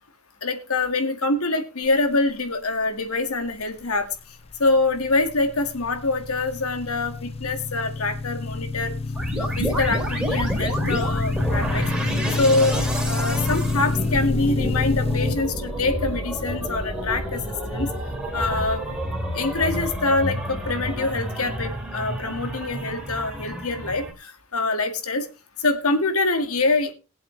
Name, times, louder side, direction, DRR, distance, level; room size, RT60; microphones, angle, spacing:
voice 1, 0.4-4.1 4.6-8.9 9.4-11.8 12.4-17.4 17.7-17.9 18.3-18.8 19.3-25.3 25.6-26.9, left 3 dB, 85° left, 7 dB, 2.0 m, -25 dB
sound 1, 4.5-15.4, left 3 dB, 30° left, 0.6 m, -28 dB
sound 2, 9.2-24.1, equal, 5° right, 2.9 m, -29 dB
21.0 x 7.9 x 3.3 m, 0.30 s
head